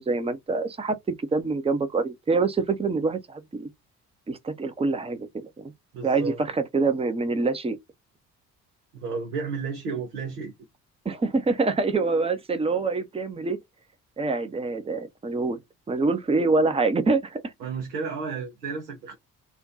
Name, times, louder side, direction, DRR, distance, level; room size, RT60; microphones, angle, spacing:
voice 1, 0.0-3.7 4.3-5.7 6.0-7.8 11.0-13.6 14.2-15.6 15.9-17.5, right 3 dB, 15° right, 0.6 m, -25 dB
voice 2, 5.9-6.4 8.9-10.5 17.6-19.2, right 5 dB, 85° right, 0.7 m, -32 dB
2.5 x 2.2 x 3.7 m
figure-of-eight pair, 50°, 46 cm